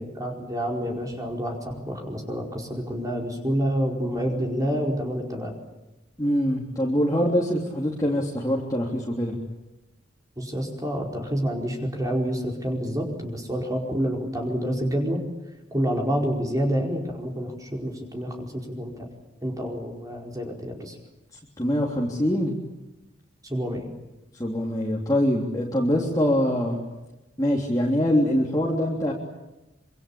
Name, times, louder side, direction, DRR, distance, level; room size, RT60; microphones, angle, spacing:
voice 1, 0.0-5.5 10.4-15.2 15.7-19.1 19.4-21.0 23.4-23.9, equal, 20° right, 1 dB, 4.8 m, -28 dB
voice 2, 6.2-9.3 21.6-22.5 24.3-26.8 27.4-29.1, equal, 20° left, -2 dB, 3.4 m, -24 dB
26.0 x 25.5 x 8.8 m, 1.0 s
head